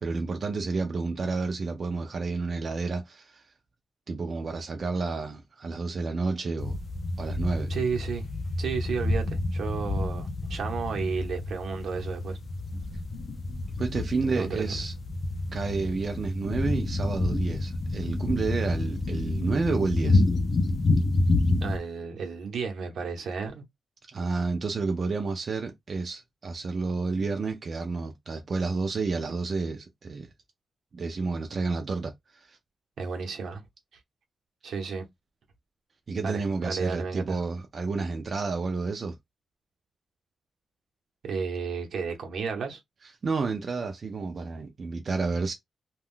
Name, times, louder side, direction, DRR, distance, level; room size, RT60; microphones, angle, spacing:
voice 1, 0.0-3.4 4.1-6.8 7.2-7.7 13.8-14.9 15.5-20.2 24.1-30.3 30.9-32.6 36.1-39.2 43.2-45.5, right 4 dB, 35° right, 0.4 m, -30 dB
sound 1, 6.6-21.8, left 2 dB, 35° left, 0.5 m, -28 dB
voice 2, 7.7-8.2 8.6-12.4 14.3-14.6 21.6-23.6 33.0-33.6 34.6-35.0 36.2-37.4 41.2-42.8, right 5 dB, 70° right, 0.8 m, -32 dB
2.4 x 2.2 x 3.6 m
wide cardioid pair, 175°, 0 cm